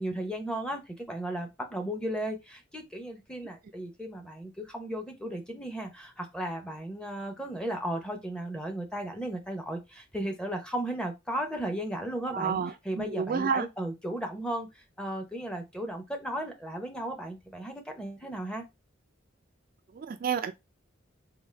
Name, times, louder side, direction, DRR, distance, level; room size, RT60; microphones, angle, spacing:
voice 1, 0.0-18.6, right 1 dB, 5° left, 0.6 m, -35 dB
voice 2, 12.3-12.7 13.0-13.7 20.0-20.5, right 6 dB, 45° right, 0.3 m, -29 dB
3.7 x 2.4 x 3.2 m
head